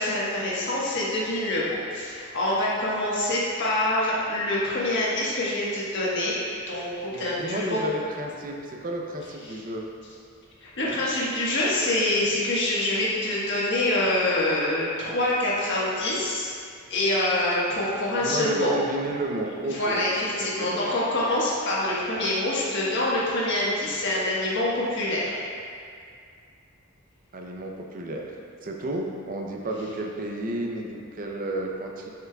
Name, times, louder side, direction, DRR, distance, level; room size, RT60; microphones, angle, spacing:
voice 1, 0.0-6.3 6.7-7.8 10.6-16.5 16.9-18.7 19.7-25.4, left 1 dB, 55° left, -6 dB, 1.4 m, -25 dB
voice 2, 7.1-9.9 18.2-20.9 27.3-28.4 28.6-32.1, right 1 dB, 40° right, 1 dB, 0.6 m, -32 dB
7.6 x 5.6 x 2.3 m, 2.3 s
head